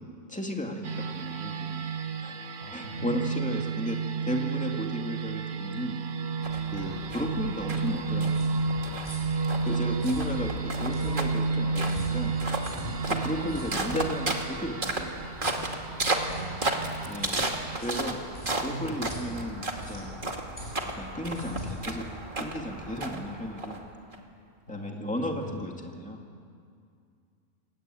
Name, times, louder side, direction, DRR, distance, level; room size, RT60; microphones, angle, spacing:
voice 1, 0.3-1.9 2.1-2.3 2.7-6.0 6.7-8.6 9.6-12.4 13.1-15.2 17.0-18.2 18.6-20.2 20.9-22.1 22.4-23.8 24.7-26.2, equal, 5° left, 2 dB, 2.4 m, -34 dB
sound 1, 0.8-17.8, right 4 dB, 55° right, 1.3 m, -32 dB
voice 2, 2.6-3.1 6.7-7.2 9.5-10.1 13.4-13.5 16.2-17.2 17.8-17.9 18.7-19.3 24.7-25.6, equal, 85° left, 1 dB, 6.1 m, -42 dB
sound 2, 6.4-24.2, right 2 dB, 40° right, 2.4 m, -34 dB
sound 3, 7.9-22.9, equal, 35° left, 8.4 m, -44 dB
27.5 x 22.5 x 9.4 m, 2.3 s
omnidirectional pair, 1.4 m